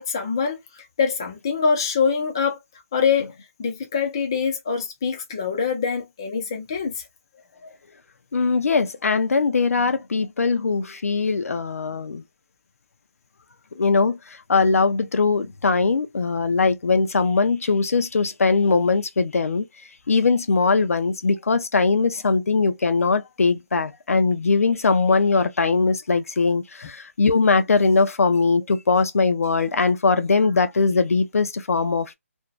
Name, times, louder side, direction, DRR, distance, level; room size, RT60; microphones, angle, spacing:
voice 1, 0.0-2.6 2.9-3.3 3.6-7.0 26.8-26.9, left 6 dB, 20° left, 0.4 m, -24 dB
voice 2, 8.3-12.2 13.8-14.2 14.5-19.6 20.1-32.1, left 4 dB, 80° left, 0.5 m, -21 dB
2.5 x 2.1 x 2.3 m
hypercardioid pair, 175°, 8 cm